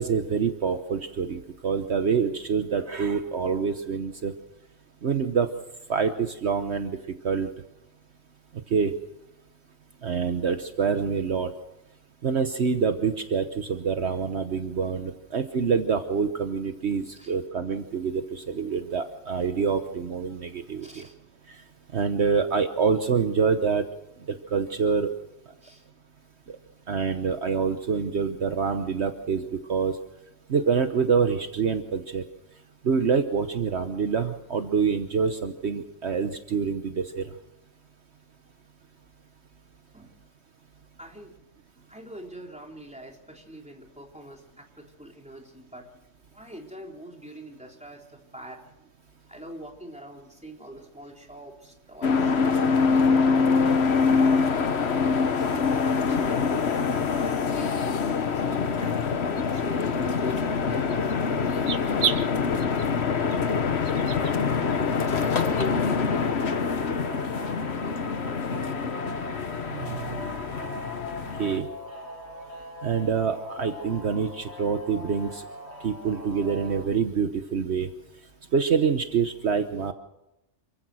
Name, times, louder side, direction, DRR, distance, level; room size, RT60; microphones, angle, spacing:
voice 1, 0.0-4.3 5.0-5.5 5.9-7.0 7.2-7.5 8.7-8.9 10.0-11.5 12.2-21.1 21.5-21.6 21.9-23.8 24.3-25.1 26.9-30.0 30.5-32.2 32.8-37.3 69.7-70.2 71.4-71.7 72.8-75.4 75.8-77.9 78.5-79.9, right 6 dB, 60° right, 7 dB, 1.3 m, -26 dB
voice 2, 20.8-21.2 25.6-25.8 39.9-40.1 41.0-41.4 41.9-45.9 46.3-48.6 49.3-54.5 55.2-56.5 57.2-57.8 58.2-64.4 64.9-68.8, equal, 5° right, 0 dB, 3.6 m, -43 dB
sound 1, 52.0-71.6, left 5 dB, 60° left, 1.4 m, -25 dB
sound 2, 58.5-58.6 59.4-59.6 60.3-60.4 60.9-61.2 61.5-62.3 62.6-62.9 63.3-63.4 63.9-64.3 64.7-64.8 65.3-65.7, right 8 dB, 75° right, 1.2 m, -31 dB
sound 3, 64.1-76.8, equal, 35° left, 6.0 m, -41 dB
27.5 x 15.5 x 6.3 m, 0.91 s
omnidirectional pair, 1.3 m